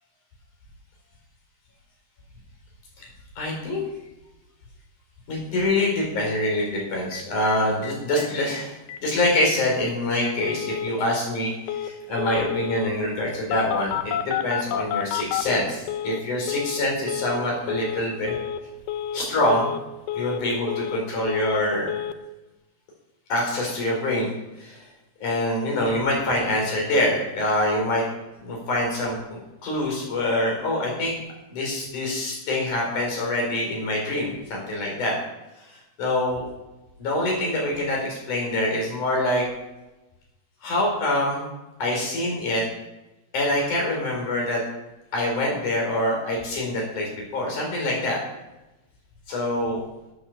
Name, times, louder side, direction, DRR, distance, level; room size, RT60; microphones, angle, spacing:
voice 1, 3.4-3.8 5.3-18.3 19.1-19.7 20.1-21.9 23.3-24.3 24.6-24.9 25.2-28.0 28.4-31.2 31.5-35.2 35.6-35.7 36.0-36.4 37.0-39.5 40.6-41.4 41.8-42.6 43.3-44.6 45.1-48.2 49.3-49.8, left 1 dB, 50° left, -1 dB, 5.7 m, -25 dB
Telephone, 6.7-6.8 7.1-7.2 7.5-7.6 7.8-8.3 8.5-8.6 8.9-9.3 9.7-9.8 10.2-10.9 11.7-11.9 12.2-12.9 13.5-16.2 16.5-16.8 17.1-17.4 17.7-18.0 18.3-18.6 18.9-19.2 19.5-19.8 20.1-21.0 21.3-21.6 21.9-22.1, left 9 dB, 90° left, 1.8 m, -30 dB
14.5 x 8.9 x 6.6 m, 1.0 s
omnidirectional pair, 4.8 m